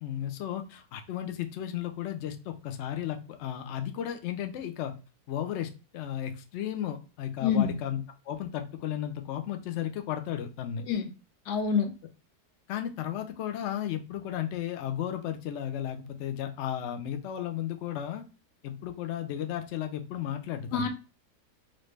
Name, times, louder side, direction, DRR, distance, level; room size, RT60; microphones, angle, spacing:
voice 1, 0.0-4.9 5.3-10.8 12.7-18.2 18.6-20.9, left 10 dB, 70° left, 6 dB, 0.7 m, -34 dB
voice 2, 7.4-7.7 10.9-11.1 11.5-11.9 20.7-20.9, left 7 dB, 90° left, 6 dB, 1.2 m, -26 dB
3.2 x 2.6 x 3.1 m, 0.32 s
omnidirectional pair, 1.7 m